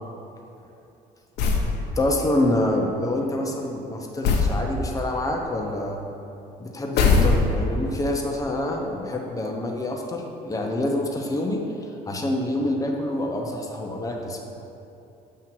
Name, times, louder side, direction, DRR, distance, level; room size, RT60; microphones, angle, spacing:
sound 1, 1.4-1.7 4.2-4.6 7.0-7.8, left 4 dB, 80° left, 0.8 m, -19 dB
voice 1, 2.0-6.0 6.6-11.6 12.1-14.4, left 1 dB, 20° left, 1 dB, 0.8 m, -26 dB
7.5 x 2.8 x 5.9 m, 2.8 s
cardioid pair, 110°, 17 cm